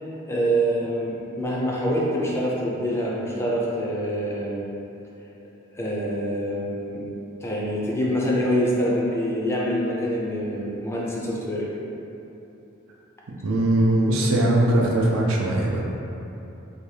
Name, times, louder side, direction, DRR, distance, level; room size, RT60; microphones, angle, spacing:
voice 1, 0.3-4.6 5.7-7.0 7.4-11.7, equal, 15° left, -5 dB, 0.3 m, -25 dB
voice 2, 13.4-15.8, right 1 dB, 80° right, -2 dB, 0.4 m, -20 dB
2.7 x 2.2 x 3.1 m, 2.9 s
head